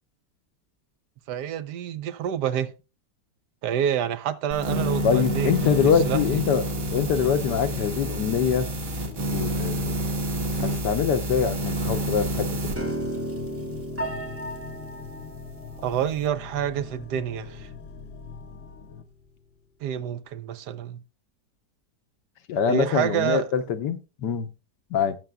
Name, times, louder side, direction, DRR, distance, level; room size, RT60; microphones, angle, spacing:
voice 1, 1.3-2.7 3.6-6.4 15.8-17.7 19.8-21.0 22.7-23.5, right 9 dB, 75° right, 1.2 m, -28 dB
sound 1, 4.5-12.8, right 1 dB, 50° right, 1.8 m, -28 dB
voice 2, 5.0-8.7 9.3-9.9 10.6-12.9 22.5-24.5 24.9-25.2, left 7 dB, 80° left, 1.5 m, -24 dB
sound 2, 5.5-19.0, left 7 dB, 60° left, 0.9 m, -44 dB
Piano, 12.8-19.0, equal, 10° right, 0.7 m, -36 dB
18.5 x 6.9 x 2.3 m
omnidirectional pair, 1.8 m